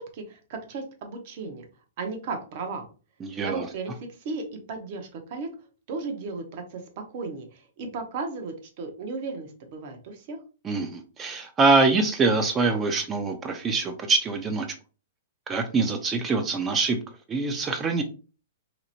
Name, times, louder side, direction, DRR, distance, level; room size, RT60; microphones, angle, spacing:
voice 1, 0.0-1.7 2.0-2.9 3.4-5.5 5.9-10.4, right 4 dB, 55° right, 4 dB, 0.7 m, -35 dB
voice 2, 3.2-3.7 10.6-14.7 15.5-17.0 17.3-18.0, right 3 dB, 20° right, 6 dB, 0.4 m, -24 dB
2.8 x 2.0 x 2.7 m, 0.35 s
hypercardioid pair, 130°, 0 cm